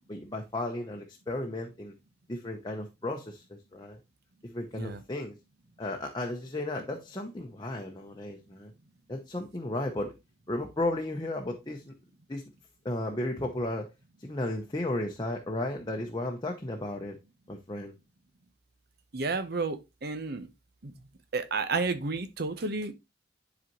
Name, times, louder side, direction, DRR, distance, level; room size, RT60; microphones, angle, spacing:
voice 1, 0.0-1.9 2.3-4.0 4.4-5.4 5.8-8.7 9.1-10.1 10.5-11.9 12.3-12.4 12.8-13.9 14.2-17.2 17.5-17.9, left 1 dB, 20° left, 0.8 m, -34 dB
voice 2, 19.1-20.5 20.8-20.9 21.3-22.9, right 3 dB, 55° right, 0.8 m, -31 dB
10.5 x 4.1 x 3.0 m
head